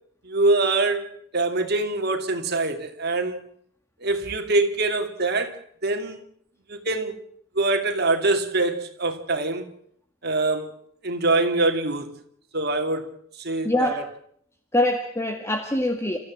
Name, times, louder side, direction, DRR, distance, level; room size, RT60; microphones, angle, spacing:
voice 1, 0.2-1.1 1.3-3.4 4.0-6.2 6.7-7.1 7.5-9.7 10.2-10.7 11.0-12.1 12.5-14.1, right 2 dB, 50° right, 2.9 m, -24 dB
voice 2, 13.6-14.0 14.7-16.2, left 1 dB, 15° left, 1.8 m, -24 dB
30.0 x 14.5 x 7.8 m
head